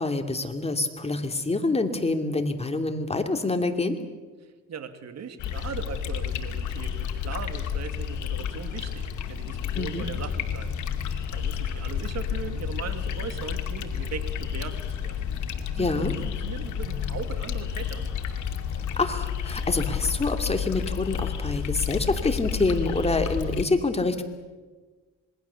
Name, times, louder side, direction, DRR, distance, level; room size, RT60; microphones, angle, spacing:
voice 1, 0.0-4.0 9.7-10.1 15.8-16.1 18.7-24.2, left 3 dB, 20° left, 5 dB, 2.7 m, -26 dB
voice 2, 4.4-10.7 11.0-15.2 15.7-18.1, right 6 dB, 60° right, 9 dB, 2.5 m, -39 dB
sound 1, 5.4-23.6, left 8 dB, 75° left, 2.4 m, -31 dB
26.5 x 20.5 x 7.1 m, 1.4 s
cardioid pair, 90°, 30 cm